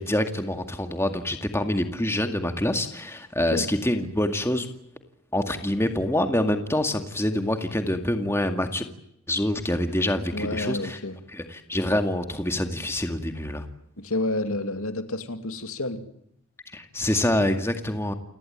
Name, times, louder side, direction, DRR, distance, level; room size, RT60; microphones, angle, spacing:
voice 1, 0.0-4.7 5.3-8.8 9.3-11.0 11.3-13.7 16.7-18.1, left 1 dB, 10° left, 6 dB, 2.1 m, -26 dB
voice 2, 10.3-11.2 14.0-16.0, left 2 dB, 70° left, 8 dB, 2.6 m, -29 dB
29.5 x 18.5 x 8.9 m, 0.75 s
head